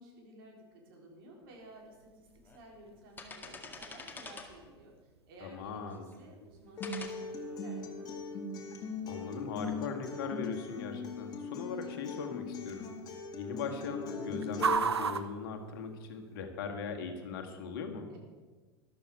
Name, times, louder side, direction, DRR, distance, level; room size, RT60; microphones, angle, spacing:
voice 1, 0.0-8.3 18.1-18.2, right 1 dB, 55° right, 0 dB, 3.8 m, -54 dB
sound 1, 1.5-1.6 2.3-2.6 3.0-4.7 5.4-6.1 6.8-7.1, left 4 dB, 15° left, 1.8 m, -47 dB
sound 2, 1.6-16.4, right 6 dB, 80° right, 0.8 m, -42 dB
voice 2, 5.4-6.1 9.1-12.9 13.3-18.1, left 5 dB, 55° left, 5 dB, 1.8 m, -39 dB
Acoustic guitar, 6.8-14.8, left 4 dB, 30° left, 2.3 m, -40 dB
13.5 x 12.0 x 4.9 m, 1.4 s
figure-of-eight pair, 85°, 14 cm